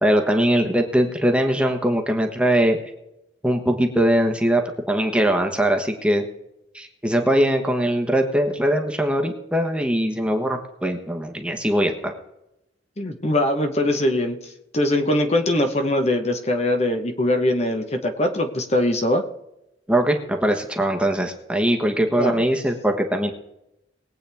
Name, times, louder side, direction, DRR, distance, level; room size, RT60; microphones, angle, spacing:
voice 1, 0.0-2.8 3.4-4.6 4.9-6.2 6.7-12.1 19.9-23.3, right 1 dB, 5° right, 4 dB, 1.2 m, -21 dB
voice 2, 13.0-14.4 14.7-19.2 22.2-22.4, left 1 dB, 35° left, 5 dB, 1.0 m, -21 dB
21.0 x 8.6 x 3.5 m, 0.87 s
head